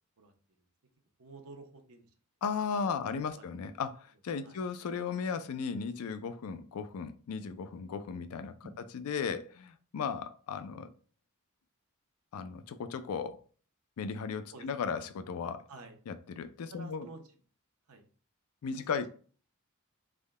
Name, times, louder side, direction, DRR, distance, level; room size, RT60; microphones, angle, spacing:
voice 1, 1.2-2.1 2.8-3.4 4.4-4.6 8.6-8.8 14.5-15.0 15.7-15.9 16.7-17.2 17.9-18.0 18.7-19.1, right 3 dB, 85° right, 0.8 m, -50 dB
voice 2, 2.4-8.5 8.9-10.9 12.3-13.4 14.0-15.6 16.1-17.1 18.6-19.1, left 6 dB, 80° left, 0.4 m, -36 dB
3.5 x 2.1 x 3.5 m
head